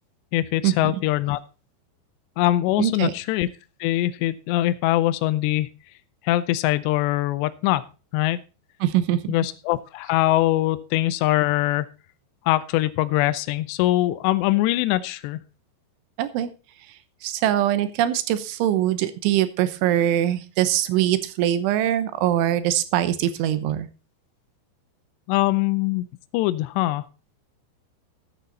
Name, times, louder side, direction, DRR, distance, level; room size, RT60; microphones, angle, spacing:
voice 1, 0.3-1.4 2.4-3.5 3.8-5.7 6.2-7.8 8.1-8.4 9.3-11.9 12.5-15.4 25.3-26.1 26.3-27.1, left 16 dB, 80° left, 12 dB, 2.6 m, -22 dB
voice 2, 2.8-3.1 8.8-9.3 16.2-16.5 17.2-23.9, right 12 dB, 85° right, 13 dB, 3.4 m, -22 dB
13.5 x 9.2 x 4.0 m, 0.32 s
omnidirectional pair, 5.3 m